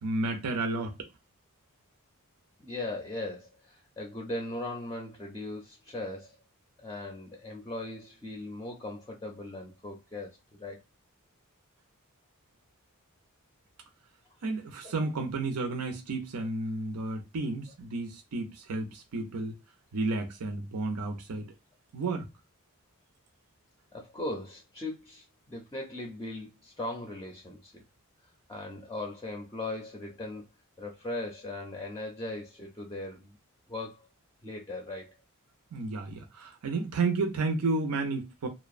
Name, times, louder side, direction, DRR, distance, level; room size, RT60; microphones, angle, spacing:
voice 1, 0.0-1.0 14.4-19.6 19.9-21.5 21.9-22.3 35.7-38.5, right 3 dB, 85° right, 0.5 m, -32 dB
voice 2, 2.6-6.3 6.8-10.8 14.8-14.9 23.9-27.8 28.5-30.5 30.8-33.4 33.7-34.1 34.4-35.2, left 2 dB, 15° left, 0.5 m, -39 dB
2.7 x 2.1 x 2.4 m
head